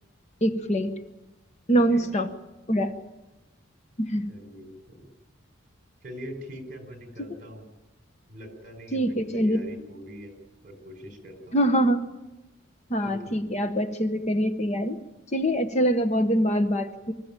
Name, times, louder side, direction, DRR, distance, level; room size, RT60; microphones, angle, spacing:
voice 1, 0.4-0.9 1.7-2.3 2.7-3.0 4.0-4.3 8.9-9.6 11.5-12.0 12.9-15.0 15.3-17.1, equal, 35° left, 9 dB, 1.0 m, -24 dB
voice 2, 1.7-2.2 4.3-5.0 6.0-7.7 8.3-10.3 10.6-11.6 13.0-13.2, equal, 40° right, 5 dB, 4.8 m, -43 dB
25.5 x 15.0 x 9.0 m, 1.0 s
head